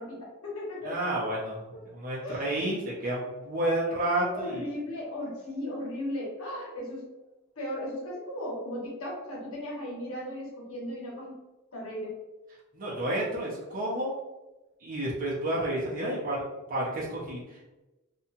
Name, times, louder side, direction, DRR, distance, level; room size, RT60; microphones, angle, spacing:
voice 1, 0.0-1.0 1.7-1.8 2.2-2.6 4.3-7.0 7.6-11.4 11.7-12.2, left 1 dB, 80° left, -4 dB, 1.2 m, -36 dB
voice 2, 0.8-4.7 12.7-14.1 14.8-17.8, right 1 dB, 40° right, -6 dB, 0.6 m, -31 dB
2.7 x 2.3 x 2.7 m, 1.1 s
head